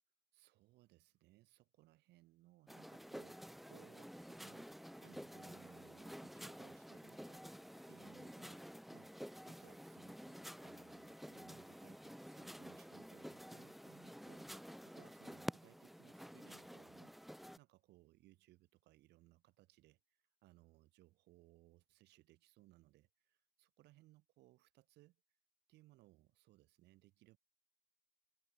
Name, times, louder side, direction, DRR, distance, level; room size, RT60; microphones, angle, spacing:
voice 1, 0.3-7.4 7.9-17.2 17.6-25.2 25.7-27.4, right 18 dB, 85° right, 4.0 m, -67 dB
sound 1, 2.7-17.6, equal, ahead, 1.8 m, -51 dB
cardioid pair, 110°, 17 cm